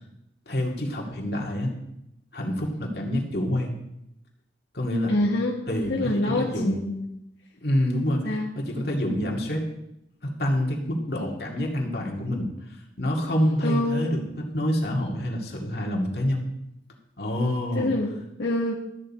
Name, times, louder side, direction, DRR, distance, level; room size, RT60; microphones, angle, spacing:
voice 1, 0.5-1.7 2.3-3.7 4.7-5.2 5.7-6.8 7.6-9.7 10.2-12.5 13.0-16.4 17.2-17.9, equal, 60° left, 0 dB, 2.3 m, -27 dB
voice 2, 5.1-7.0 8.2-8.5 11.2-11.3 13.6-14.1 17.7-18.1 18.4-18.7, left 1 dB, 80° left, -3 dB, 1.6 m, -26 dB
13.5 x 9.2 x 4.4 m, 0.82 s
head